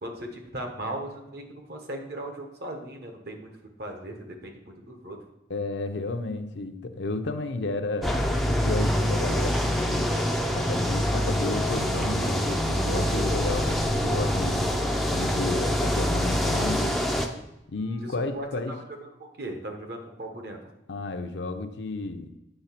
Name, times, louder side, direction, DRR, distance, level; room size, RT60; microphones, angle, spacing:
voice 1, 0.0-3.5 3.8-5.2 18.0-20.6, right 1 dB, 55° right, 3 dB, 1.1 m, -38 dB
voice 2, 5.5-10.1 10.5-14.8 15.1-17.0 17.7-18.8 20.9-22.4, left 2 dB, 65° left, 7 dB, 0.6 m, -32 dB
sound 1, 8.0-17.3, equal, ahead, 0.4 m, -25 dB
Squeak, 11.0-17.4 18.2-18.3, right 1 dB, 90° right, 1.3 m, -39 dB
8.0 x 3.2 x 5.9 m, 0.94 s
head